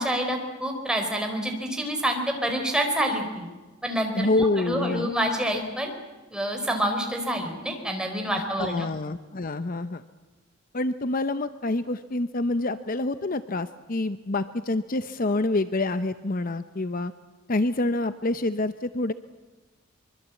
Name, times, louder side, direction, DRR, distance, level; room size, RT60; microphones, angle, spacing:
voice 1, 0.0-3.5 3.8-5.9 6.3-8.9, equal, 5° right, 3 dB, 4.3 m, -27 dB
voice 2, 4.1-5.1 8.4-10.0 10.7-17.1 17.5-19.1, left 2 dB, 45° left, 12 dB, 0.8 m, -27 dB
24.5 x 23.5 x 8.4 m, 1.2 s
head